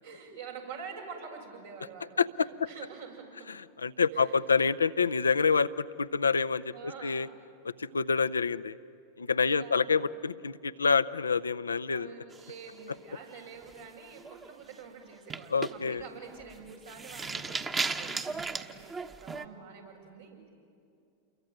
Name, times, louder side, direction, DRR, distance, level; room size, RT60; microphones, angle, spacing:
voice 1, 0.0-3.5 4.1-4.4 6.7-7.2 9.3-10.0 11.9-20.5, right 5 dB, 80° right, -1 dB, 6.6 m, -47 dB
voice 2, 2.2-2.5 3.5-7.3 7.6-8.8 9.2-12.1 15.5-16.0, left 5 dB, 90° left, 13 dB, 0.6 m, -27 dB
sound 1, 12.3-13.2 13.6-13.9 14.2-14.5 15.1-19.5, right 4 dB, 20° right, 1.2 m, -36 dB
28.5 x 23.0 x 9.1 m, 2.6 s
hypercardioid pair, 95°, 0 cm